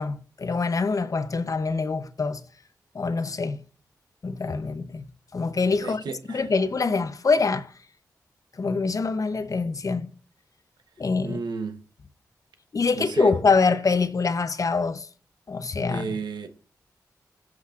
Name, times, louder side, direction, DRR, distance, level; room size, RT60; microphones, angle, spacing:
voice 1, 0.0-2.4 2.9-3.6 4.2-6.0 6.3-7.7 8.6-10.1 11.0-11.4 12.7-15.1 15.5-16.1, left 4 dB, 50° left, 0.7 m, -25 dB
voice 2, 5.8-6.5 11.2-11.8 12.9-13.3 15.9-16.5, right 5 dB, 85° right, 0.9 m, -33 dB
16.0 x 6.2 x 2.5 m
cardioid pair, 45°, 7 cm